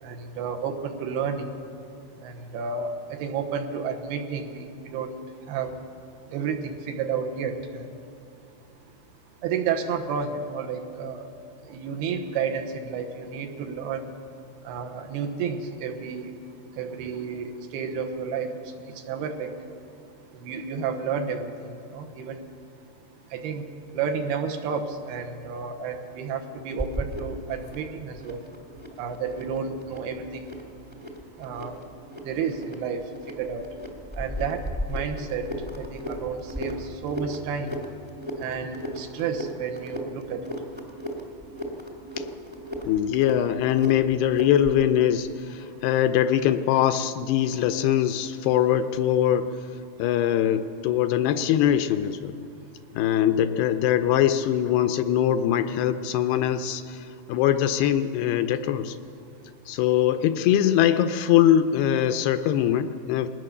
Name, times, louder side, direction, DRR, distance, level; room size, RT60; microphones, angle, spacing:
voice 1, 0.0-1.5 2.2-5.2 5.5-5.8 6.3-7.9 9.4-11.3 11.7-14.1 14.6-16.3 16.8-18.6 19.1-19.5 20.4-21.5 21.9-22.4 23.3-23.7 23.9-28.4 29.0-30.5 31.4-31.8 32.2-33.0 33.4-33.7 34.2-34.6 34.9-35.5 35.8-37.7 38.4-40.4, right 6 dB, 75° right, 5 dB, 3.0 m, -31 dB
sound 1, 26.8-44.8, equal, 5° right, 0.9 m, -37 dB
voice 2, 42.9-49.7 50.0-52.4 53.0-59.0 59.7-63.3, left 10 dB, 80° left, 9 dB, 2.5 m, -22 dB
21.5 x 18.5 x 6.7 m, 2.5 s
omnidirectional pair, 4.8 m